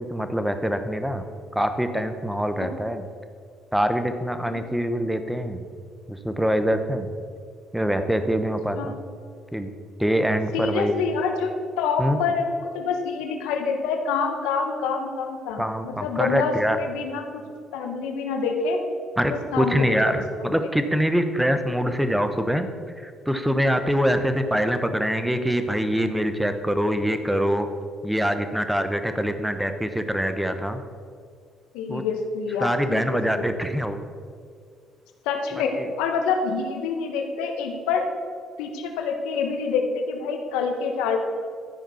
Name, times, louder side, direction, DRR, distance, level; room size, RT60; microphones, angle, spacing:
voice 1, 0.1-1.3 1.5-3.1 3.7-5.7 6.1-7.1 7.7-9.0 9.5-9.7 10.0-11.0 12.0-12.2 15.6-16.8 19.2-22.7 23.0-27.7 28.0-30.8 31.9-32.0 32.6-34.1 35.8-35.9, equal, 5° right, 8 dB, 0.9 m, -24 dB
voice 2, 10.5-11.5 11.8-17.4 17.7-18.8 19.3-20.2 31.7-33.5 35.2-38.0 38.6-41.2, left 5 dB, 90° left, 4 dB, 1.2 m, -27 dB
12.5 x 5.0 x 5.7 m, 2.1 s
supercardioid pair, 70°, 0 cm